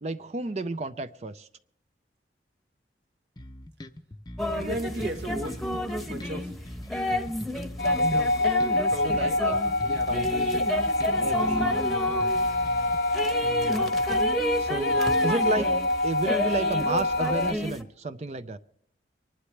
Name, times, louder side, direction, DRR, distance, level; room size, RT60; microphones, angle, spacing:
voice 1, 0.0-1.5 8.0-8.3 9.0-10.4 11.2-11.9 12.4-12.5 13.4-13.9 14.6-15.7 16.0-18.6, right 2 dB, 35° right, 11 dB, 0.5 m, -32 dB
sound 1, 3.4-13.0, left 1 dB, 25° left, 0.6 m, -42 dB
sound 2, 4.4-17.8, left 1 dB, ahead, 1.0 m, -31 dB
voice 2, 4.5-5.7 6.1-6.5 8.3-8.4 8.9-9.5 9.9-10.7 11.0-12.4, right 1 dB, 70° right, 5 dB, 1.5 m, -37 dB
sound 3, 7.8-17.5, left 1 dB, 65° left, 0.7 m, -26 dB
25.0 x 11.5 x 3.3 m, 0.73 s
head